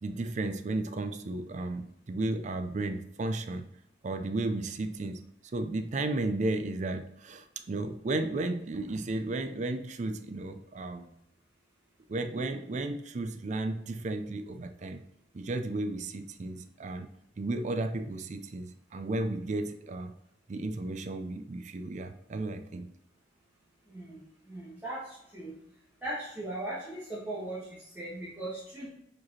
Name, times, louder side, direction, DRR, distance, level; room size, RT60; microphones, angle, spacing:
voice 1, 0.0-3.7 4.0-5.2 5.5-11.1 12.1-15.0 15.3-17.1 17.4-20.1 20.5-22.9, right 2 dB, 45° right, 8 dB, 0.4 m, -34 dB
voice 2, 23.9-25.5 26.0-28.9, right 1 dB, 10° right, -10 dB, 1.4 m, -39 dB
4.9 x 4.6 x 4.2 m, 0.74 s
head